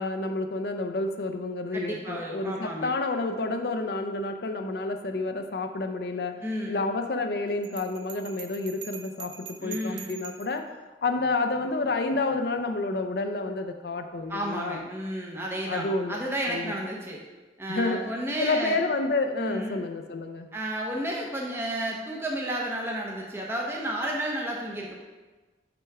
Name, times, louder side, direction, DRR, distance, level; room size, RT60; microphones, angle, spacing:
voice 1, 0.0-10.7 11.0-14.9 15.7-16.2 16.5-16.7 17.7-18.1 18.4-20.5, left 3 dB, 60° left, 6 dB, 0.5 m, -29 dB
voice 2, 1.7-2.9 6.4-6.8 9.6-10.2 14.3-17.2 17.6-18.8 19.4-19.8 20.5-24.9, right 1 dB, 15° right, -2 dB, 0.8 m, -32 dB
Bell, 7.6-10.6, right 8 dB, 85° right, 0.7 m, -43 dB
6.2 x 6.0 x 4.7 m, 1.3 s
head